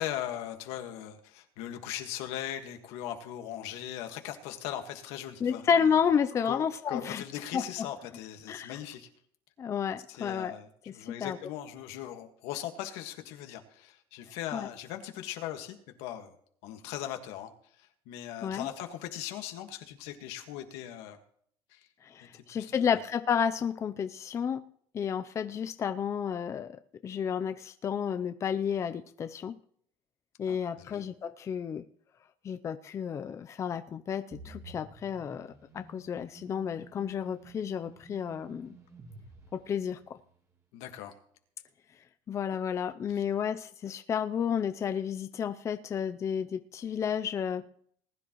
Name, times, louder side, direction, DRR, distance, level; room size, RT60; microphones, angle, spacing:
voice 1, 0.0-5.6 6.5-9.1 10.1-16.3 16.6-17.5 17.8-21.2 21.7-21.9 22.3-22.9 30.5-31.0 40.7-41.1 43.1-43.2, left 11 dB, 80° left, 6 dB, 1.7 m, -39 dB
voice 2, 5.4-7.2 7.5-7.9 8.5-8.8 9.6-10.6 10.9-11.4 14.5-14.7 18.4-18.7 22.0-24.6 24.9-26.8 27.0-29.6 30.4-31.8 32.4-38.8 39.5-40.2 42.3-47.6, left 7 dB, 30° left, 9 dB, 0.5 m, -31 dB
sound 1, 34.3-40.3, right 3 dB, 30° right, 2.3 m, -52 dB
19.5 x 10.5 x 3.1 m, 0.63 s
cardioid pair, 130°, 10 cm